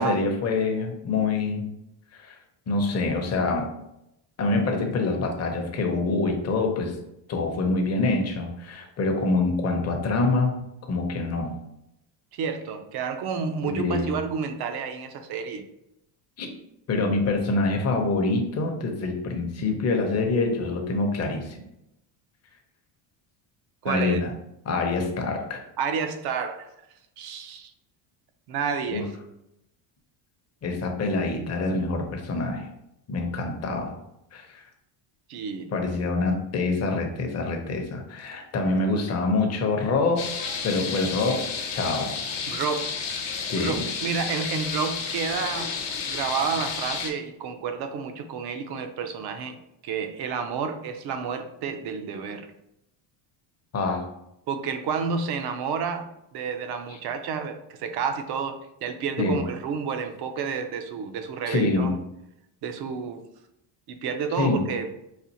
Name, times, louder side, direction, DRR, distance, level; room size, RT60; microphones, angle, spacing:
voice 1, 0.0-1.7 2.1-2.4 2.7-3.7 4.4-7.0 7.3-10.6 10.9-11.5 13.6-14.2 16.4-16.5 16.9-21.6 23.8-24.3 24.7-25.6 28.9-29.1 30.6-32.7 33.1-34.0 34.3-34.6 35.7-40.3 40.6-42.2 43.5-43.8 53.7-54.0 59.2-59.4 61.5-61.9 64.4-64.7, left 3 dB, 30° left, 3 dB, 0.6 m, -25 dB
voice 2, 12.3-15.7 23.8-24.2 25.8-26.7 27.2-27.7 28.5-29.1 35.3-35.7 42.5-42.9 43.6-45.7 46.0-49.6 49.8-52.5 54.5-61.9 62.6-63.2 63.9-64.9, right 6 dB, 50° right, 8 dB, 0.5 m, -30 dB
sound 1, 40.2-47.1, left 6 dB, 60° left, 0.9 m, -31 dB
4.2 x 2.4 x 2.7 m, 0.84 s
cardioid pair, 110°, 50 cm